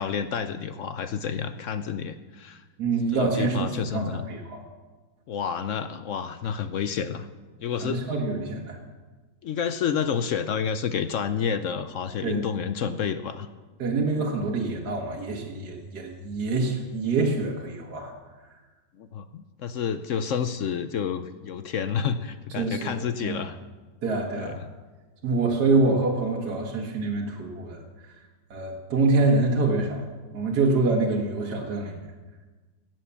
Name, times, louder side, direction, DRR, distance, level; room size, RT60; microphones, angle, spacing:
voice 1, 0.0-2.6 3.1-4.3 5.3-7.3 7.6-8.0 9.4-13.5 19.0-23.6 24.4-24.6, left 7 dB, 70° left, 11 dB, 0.7 m, -29 dB
voice 2, 2.8-4.6 7.8-8.8 12.2-12.5 13.8-18.1 22.6-23.4 24.0-24.6 25.2-28.1 28.5-30.0 30.3-32.0, right 3 dB, 65° right, -1 dB, 1.9 m, -26 dB
16.5 x 7.5 x 6.9 m, 1.3 s
omnidirectional pair, 1.9 m